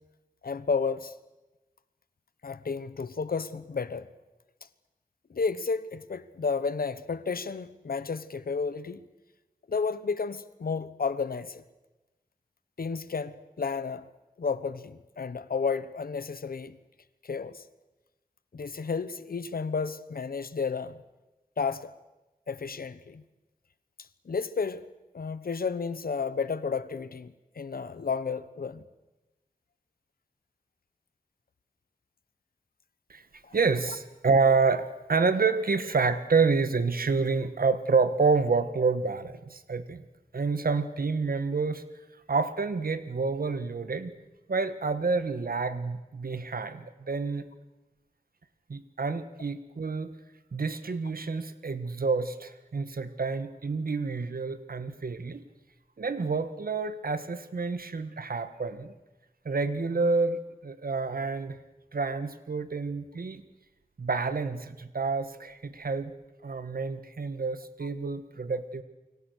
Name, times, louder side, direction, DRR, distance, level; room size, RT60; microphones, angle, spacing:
voice 1, 0.4-1.1 2.4-4.1 5.3-9.0 9.7-11.6 12.8-14.1 14.4-16.8 17.2-17.6 18.5-21.0 21.6-21.9 22.5-23.2 24.2-24.8 25.1-28.8 33.4-33.6, left 5 dB, 90° left, 1.1 m, -32 dB
voice 2, 33.5-40.0 40.3-41.8 42.3-44.1 44.5-47.5 48.7-50.1 50.5-55.4 56.0-58.9 59.4-61.6 61.9-63.4 64.0-66.1 66.4-68.8, right 4 dB, 80° right, 1.6 m, -28 dB
29.5 x 24.5 x 6.5 m
wide cardioid pair, 85°, 15 cm